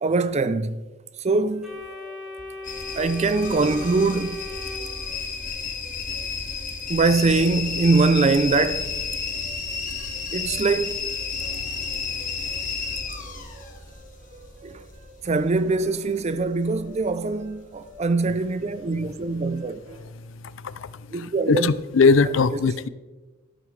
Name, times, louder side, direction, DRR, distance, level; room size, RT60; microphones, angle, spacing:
voice 1, 0.0-0.8 1.2-1.7 3.0-4.4 6.9-8.9 10.3-11.1 14.6-14.8 15.2-19.8 21.1-21.7, right 3 dB, 35° right, 0.5 m, -22 dB
sound 1, 1.3-20.0, equal, 90° right, 4.0 m, -49 dB
Organ, 1.6-5.6, left 2 dB, 5° right, 1.8 m, -38 dB
sound 2, 2.6-17.5 17.8-18.4 19.0-19.4 19.9-20.0, left 5 dB, 40° left, 1.7 m, -32 dB
voice 2, 20.6-22.9, left 4 dB, 70° left, 0.5 m, -20 dB
13.0 x 12.5 x 3.3 m
head